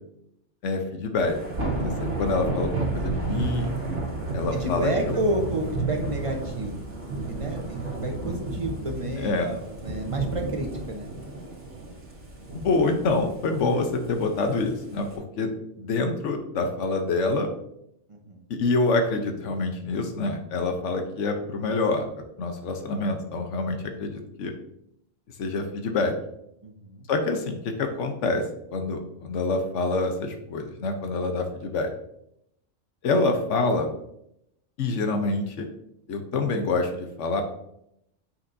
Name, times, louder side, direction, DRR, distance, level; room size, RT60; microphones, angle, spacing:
voice 1, 0.6-1.4 1.8-3.7 4.3-5.2 9.2-9.5 12.5-15.1 15.4-15.5 15.8-17.5 18.5-24.5 25.4-26.1 27.1-28.4 28.7-31.9 33.0-33.9 34.8-35.7 36.1-37.4, left 3 dB, 85° left, 5 dB, 1.1 m, -26 dB
Thunder / Rain, 1.2-15.1, right 3 dB, 80° right, 1.9 m, -32 dB
voice 2, 1.7-2.1 4.5-6.8 7.3-11.1 18.1-18.4 26.6-27.1, right 1 dB, 30° right, 2 dB, 0.9 m, -31 dB
8.1 x 5.9 x 2.6 m, 0.78 s
omnidirectional pair, 1.2 m